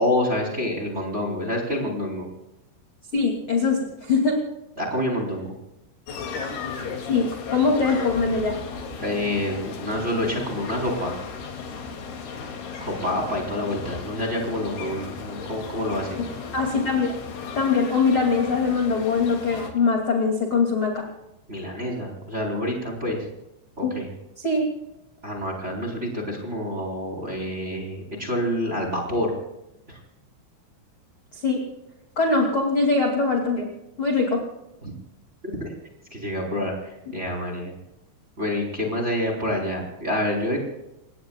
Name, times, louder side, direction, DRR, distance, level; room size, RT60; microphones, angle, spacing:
voice 1, 0.0-2.3 4.8-5.6 9.0-11.2 12.8-16.2 21.5-23.3 23.8-24.1 25.2-29.3 29.9-30.0 34.8-34.9 35.6-35.7 36.1-37.7 38.4-40.6, left 1 dB, 15° right, 1 dB, 3.7 m, -27 dB
voice 2, 3.1-4.4 7.1-8.6 16.5-17.1 17.6-21.1 23.8-23.9 24.4-24.7 31.3-31.6 32.2-33.7 34.0-34.4, left 4 dB, 35° left, 0 dB, 2.4 m, -22 dB
sound 1, 6.1-19.7, left 5 dB, 55° left, 4.2 m, -35 dB
29.5 x 19.0 x 2.4 m, 0.89 s
omnidirectional pair, 5.9 m